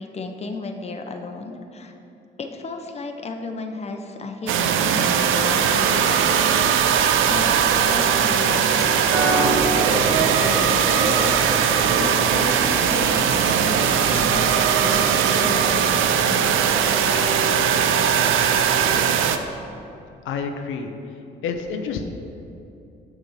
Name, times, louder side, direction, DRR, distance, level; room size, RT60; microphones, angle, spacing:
voice 1, 0.0-2.0 2.4-9.0 9.4-16.5, left 3 dB, 30° left, 4 dB, 0.8 m, -33 dB
sound 1, 4.5-19.4, right 8 dB, 85° right, 0.5 m, -20 dB
sound 2, 9.1-14.2, right 3 dB, 70° right, 0.9 m, -26 dB
voice 2, 20.2-21.1 21.4-22.1, left 5 dB, 85° left, 5 dB, 0.6 m, -29 dB
6.7 x 6.0 x 5.6 m, 2.7 s
cardioid pair, 90°, 20 cm